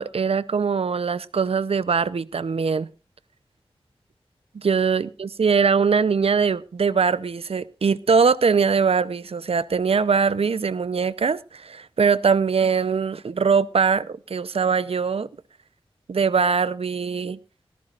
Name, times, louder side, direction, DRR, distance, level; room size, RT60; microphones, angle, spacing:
voice 1, 0.0-2.9 4.5-15.3 16.1-17.4, right 5 dB, 75° right, 0.7 m, -22 dB
18.5 x 13.5 x 2.5 m
wide cardioid pair, 55°, 10 cm